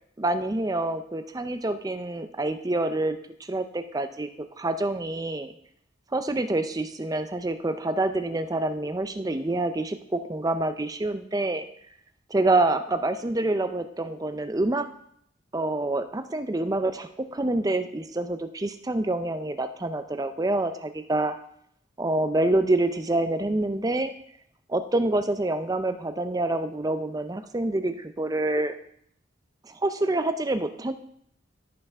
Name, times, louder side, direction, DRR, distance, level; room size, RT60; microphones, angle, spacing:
voice 1, 0.2-3.2 3.5-4.3 4.6-5.5 6.1-11.6 12.3-14.9 15.5-21.3 22.0-24.1 24.7-28.7 29.6-30.9, right 2 dB, 20° right, 9 dB, 0.5 m, -27 dB
14.0 x 5.5 x 3.6 m, 0.69 s
head